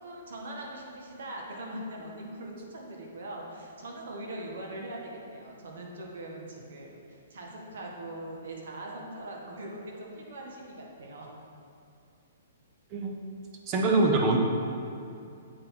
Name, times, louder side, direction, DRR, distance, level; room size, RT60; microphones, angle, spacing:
voice 1, 0.0-11.3, right 1 dB, 70° right, -1 dB, 1.3 m, -41 dB
voice 2, 13.7-14.4, right 2 dB, 30° right, 1 dB, 0.9 m, -24 dB
7.8 x 4.5 x 3.6 m, 2.6 s
hypercardioid pair, 135°, 0 cm